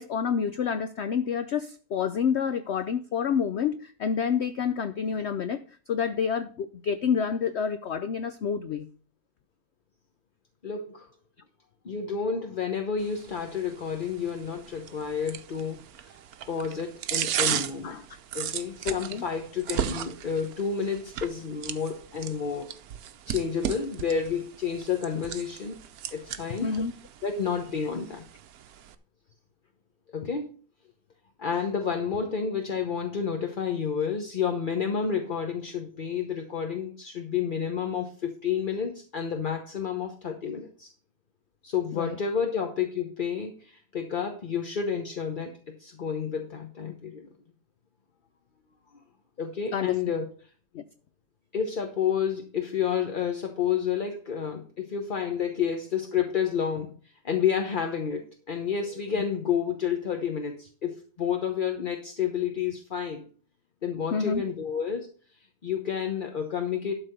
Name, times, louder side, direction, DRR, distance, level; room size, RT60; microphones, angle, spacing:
voice 1, 0.0-5.6 5.9-8.9 17.8-18.0 18.8-19.2 26.6-27.0 41.9-42.2 49.7-49.9 50.7-50.8 64.1-64.4, left 7 dB, 85° left, 11 dB, 0.5 m, -28 dB
voice 2, 10.6-11.1 11.8-16.1 16.5-18.0 18.3-22.7 23.3-25.7 26.1-26.7 27.2-28.2 30.1-30.5 31.4-40.9 41.6-45.5 45.8-47.3 49.4-50.3 51.5-56.9 57.2-63.2 63.8-65.1 65.6-66.9, left 7 dB, 40° left, 4 dB, 0.8 m, -30 dB
sound 1, 13.0-29.0, right 10 dB, 65° right, 1.1 m, -36 dB
12.0 x 4.1 x 6.6 m, 0.42 s
omnidirectional pair, 1.8 m